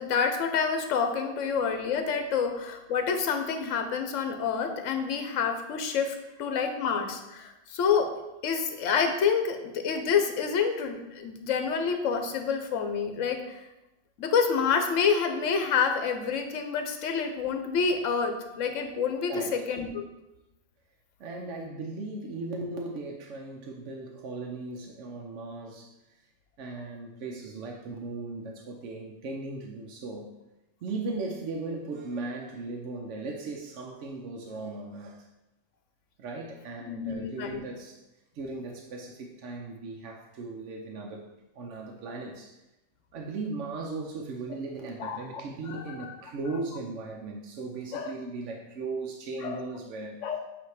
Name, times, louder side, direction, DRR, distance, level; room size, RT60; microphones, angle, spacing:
voice 1, 0.0-8.1 8.4-13.6 14.2-20.1 36.8-37.6 45.0-45.4 45.7-46.1 47.9-48.1 49.4-49.6 50.2-50.4, left 6 dB, 75° left, 6 dB, 1.1 m, -28 dB
voice 2, 19.3-19.6 21.2-25.9 26.6-30.3 30.8-35.2 36.2-38.0 38.3-41.3 41.6-42.5 43.1-50.2, right 3 dB, 70° right, 1 dB, 1.0 m, -37 dB
8.1 x 2.9 x 4.7 m, 0.96 s
omnidirectional pair, 1.3 m